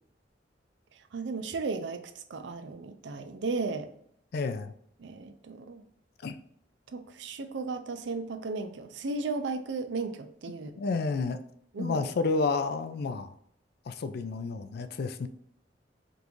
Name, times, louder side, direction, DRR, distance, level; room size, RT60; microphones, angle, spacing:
voice 1, 0.9-3.9 5.0-5.8 6.9-10.7 11.7-12.1, right 3 dB, 70° right, 9 dB, 0.5 m, -35 dB
voice 2, 4.3-4.7 6.2-6.4 10.8-11.4 11.8-13.3 13.9-15.3, left 4 dB, 60° left, 10 dB, 0.4 m, -30 dB
5.2 x 2.5 x 3.0 m, 0.68 s
head